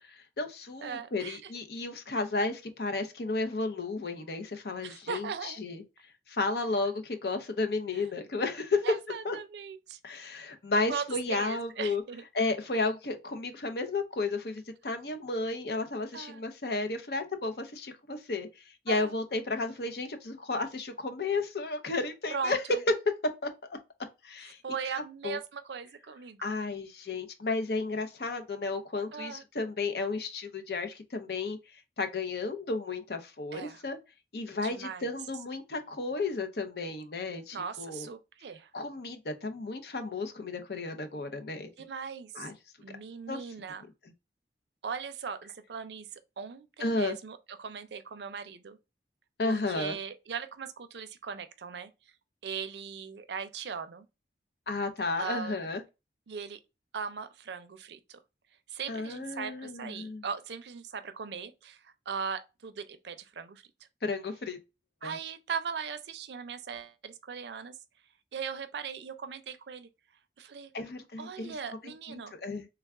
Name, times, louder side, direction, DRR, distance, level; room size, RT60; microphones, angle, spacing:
voice 1, 0.0-5.8 6.3-8.8 9.2-9.4 10.0-12.0 12.3-22.6 23.4-23.5 24.2-24.6 24.9-25.4 26.4-34.0 34.3-38.1 38.7-41.7 42.3-42.5 43.3-43.4 46.8-47.2 49.4-50.0 54.7-55.8 58.9-60.2 64.0-64.6 65.0-65.2 70.7-71.5 71.8-72.7, left 3 dB, 65° left, 0.6 m, -33 dB
voice 2, 0.8-1.5 4.8-5.6 7.9-8.0 8.8-10.0 10.9-12.3 12.7-12.9 16.1-16.4 18.9-19.1 22.3-22.8 24.6-26.6 29.1-29.4 33.5-33.8 34.6-35.1 37.5-38.7 41.8-42.5 42.8-43.8 44.8-48.8 49.4-51.9 52.4-54.1 55.2-55.6 56.3-56.6 56.9-58.2 58.7-63.6 65.0-67.7 68.3-69.9 70.4-70.7 71.2-72.3, right 6 dB, 80° right, 0.5 m, -39 dB
3.4 x 2.3 x 3.5 m
head